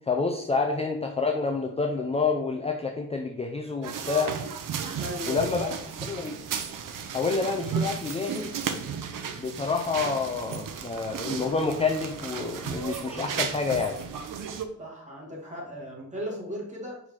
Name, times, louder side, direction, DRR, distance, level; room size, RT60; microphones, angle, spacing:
voice 1, 0.1-4.4 5.2-5.8 6.0-6.4 7.1-8.6 9.4-14.0, left 4 dB, 20° left, 2 dB, 0.5 m, -28 dB
sound 1, 3.8-14.6, right 7 dB, 90° right, 0.8 m, -34 dB
voice 2, 5.0-5.8 14.8-17.0, left 1 dB, 25° right, -3 dB, 2.3 m, -36 dB
6.1 x 4.8 x 3.7 m, 0.74 s
wide cardioid pair, 140°, 31 cm